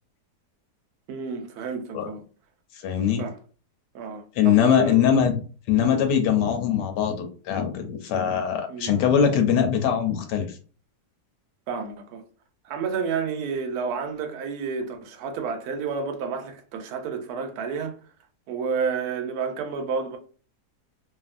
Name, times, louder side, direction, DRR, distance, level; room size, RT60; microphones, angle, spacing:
voice 1, 1.1-2.2 3.2-3.4 3.9-5.0 8.7-9.0 11.7-12.2 12.6-18.0 18.5-20.2, right 5 dB, 75° right, 1.1 m, -30 dB
voice 2, 2.8-3.2 4.4-5.4 5.7-10.5, left 8 dB, 85° left, 1.2 m, -22 dB
2.7 x 2.5 x 2.4 m
omnidirectional pair, 1.8 m